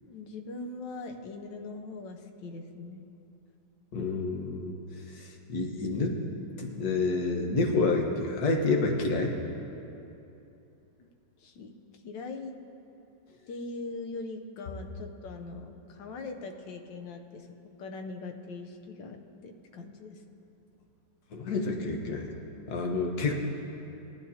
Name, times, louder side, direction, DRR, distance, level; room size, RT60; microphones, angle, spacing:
voice 1, 0.1-3.1 11.4-12.6 13.5-17.5 17.8-20.4, left 3 dB, 90° left, 4 dB, 1.5 m, -41 dB
voice 2, 3.9-4.8 5.1-6.2 6.6-9.3 21.3-22.3 22.7-23.3, left 3 dB, 60° left, 1 dB, 1.6 m, -28 dB
17.5 x 11.0 x 2.8 m, 2.8 s
omnidirectional pair, 1.9 m